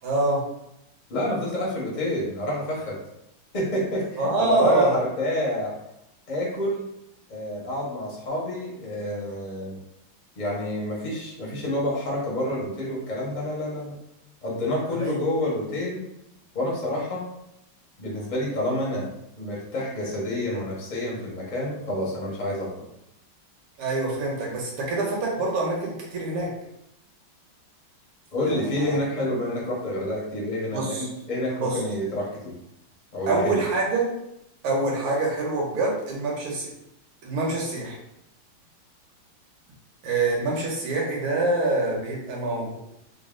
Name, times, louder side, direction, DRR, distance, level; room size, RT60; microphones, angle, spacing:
voice 1, 0.0-0.4 4.2-4.9 14.9-15.2 23.8-26.5 28.4-29.0 30.7-31.1 31.6-31.8 33.3-34.1 34.6-36.7 37.2-38.0 40.0-42.8, right 2 dB, 85° right, -3 dB, 1.9 m, -25 dB
voice 2, 1.1-3.0 3.5-5.7 6.3-6.9 7.3-9.8 10.4-13.9 14.4-16.0 16.5-17.2 18.0-19.1 19.4-22.8 28.3-32.5 33.1-33.6, left 1 dB, 65° left, -5 dB, 0.4 m, -28 dB
4.0 x 2.1 x 3.6 m, 0.83 s
omnidirectional pair, 2.4 m